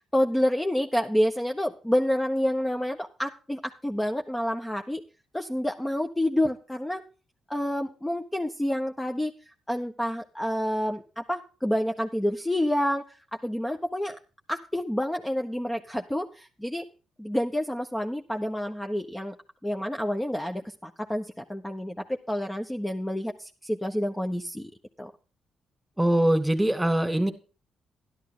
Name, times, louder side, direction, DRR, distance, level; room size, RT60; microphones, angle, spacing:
voice 1, 0.0-5.0 5.3-7.0 7.5-9.3 9.7-14.2 14.5-16.8 17.2-19.4 19.6-24.7 25.0-25.1, equal, 10° left, 1.2 m, -28 dB
voice 2, 26.0-27.3, right 1 dB, 10° right, 2.7 m, -22 dB
11.5 x 11.5 x 3.9 m
supercardioid pair, 50°, 0 cm